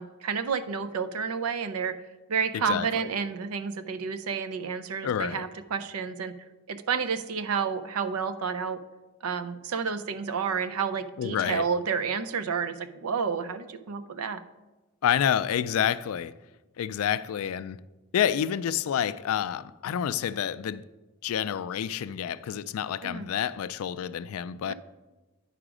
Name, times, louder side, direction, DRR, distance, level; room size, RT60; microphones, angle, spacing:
voice 1, 0.0-1.9 2.3-6.3 6.7-8.8 9.2-14.4 23.0-23.3 24.7-24.8, right 6 dB, 90° right, 0.5 m, -30 dB
voice 2, 5.0-5.4 11.2-11.6 15.0-16.3 16.8-17.8 18.1-20.8 21.2-24.7, left 9 dB, 75° left, 0.3 m, -28 dB
9.8 x 4.9 x 4.9 m
head